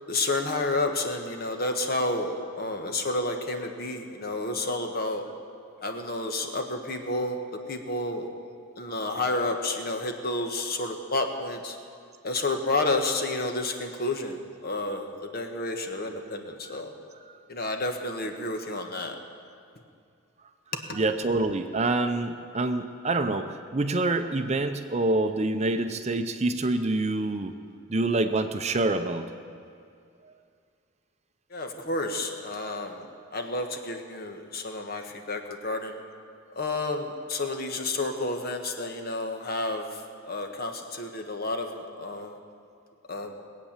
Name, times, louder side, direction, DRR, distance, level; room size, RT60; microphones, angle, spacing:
voice 1, 0.1-5.2 5.8-8.3 8.8-11.8 12.2-16.9 17.5-19.1 31.5-36.0 36.6-40.0 40.3-42.4 43.1-43.4, left 2 dB, 45° left, 5 dB, 1.3 m, -30 dB
voice 2, 20.9-27.5 27.9-29.3, right 2 dB, 30° right, 8 dB, 0.6 m, -26 dB
20.5 x 8.6 x 7.3 m, 2.4 s
head